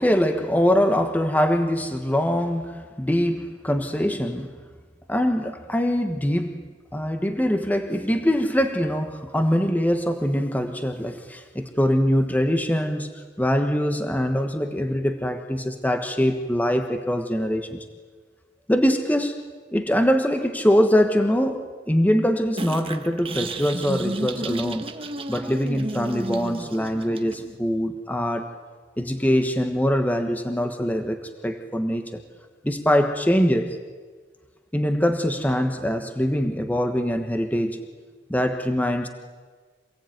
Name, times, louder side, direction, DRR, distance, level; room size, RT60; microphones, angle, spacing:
voice 1, 0.0-4.5 5.1-6.6 6.9-13.1 13.4-17.8 18.7-19.4 19.7-24.9 25.3-28.5 29.0-32.2 32.6-33.8 34.7-37.8 38.3-39.1, equal, 10° left, 6 dB, 1.3 m, -23 dB
sound 1, 22.6-27.6, right 2 dB, 30° right, 1.4 m, -32 dB
27.5 x 18.0 x 9.3 m, 1.5 s
head